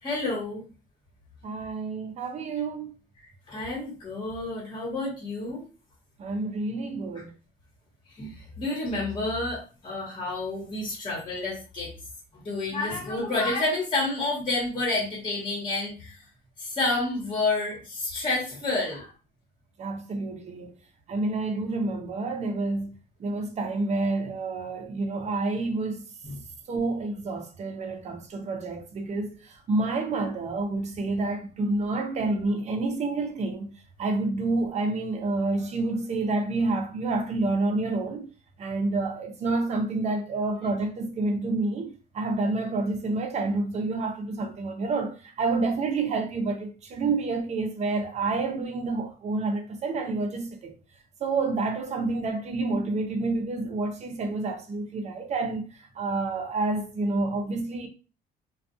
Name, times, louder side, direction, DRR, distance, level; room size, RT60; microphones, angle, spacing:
voice 1, 0.0-0.7 3.2-5.6 7.1-7.2 8.1-11.9 12.3-16.2 16.6-19.1 26.2-26.4, left 2 dB, 30° left, 1.2 m, -29 dB
voice 2, 1.4-2.9 6.2-7.3 19.8-20.7 21.1-22.9 23.2-26.0 26.7-33.7 34.0-38.3 38.6-50.7 51.2-55.6 56.0-57.9, right 3 dB, 40° right, 0.6 m, -28 dB
2.4 x 2.3 x 2.6 m
cardioid pair, 110°, 17 cm